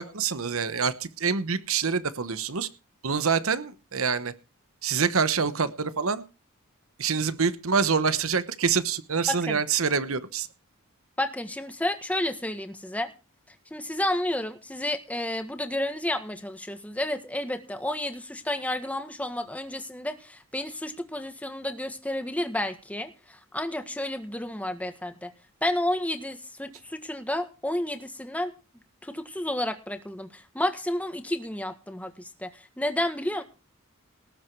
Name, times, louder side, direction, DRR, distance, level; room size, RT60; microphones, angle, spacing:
voice 1, 0.0-2.7 3.0-4.3 4.8-6.2 7.0-10.5, right 5 dB, 70° right, 14 dB, 1.0 m, -26 dB
voice 2, 9.3-9.6 11.2-13.1 13.7-25.3 25.6-28.5 29.0-33.4, left 1 dB, 5° left, 7 dB, 1.7 m, -31 dB
19.0 x 7.9 x 4.6 m, 0.33 s
head